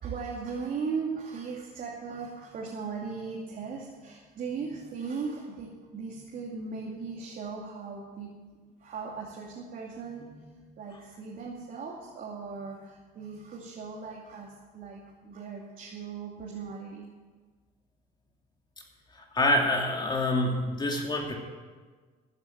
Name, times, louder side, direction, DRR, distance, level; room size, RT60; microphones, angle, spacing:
voice 1, 0.0-8.4 8.8-17.1, right 5 dB, 55° right, -2 dB, 2.7 m, -38 dB
voice 2, 19.1-21.4, left 1 dB, 25° left, 1 dB, 2.6 m, -26 dB
14.5 x 9.6 x 7.9 m, 1.4 s
cardioid pair, 110°, 17 cm